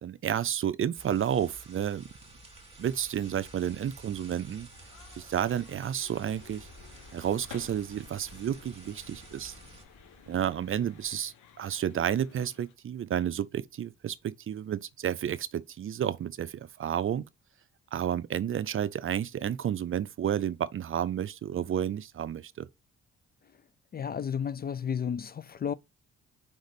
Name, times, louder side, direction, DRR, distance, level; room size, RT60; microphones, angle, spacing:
voice 1, 0.0-2.1 2.8-4.7 5.2-6.7 7.1-9.5 10.3-17.3 17.9-22.7, right 9 dB, 45° right, 0.5 m, -31 dB
sound 1, 0.9-9.8, right 2 dB, 20° right, 2.5 m, -52 dB
sound 2, 4.7-12.7, left 9 dB, 80° left, 1.2 m, -55 dB
sound 3, 6.1-11.2, left 2 dB, 60° left, 3.1 m, -55 dB
voice 2, 23.9-25.7, left 7 dB, 30° left, 0.4 m, -32 dB
5.1 x 3.9 x 5.3 m
cardioid pair, 90°, 30 cm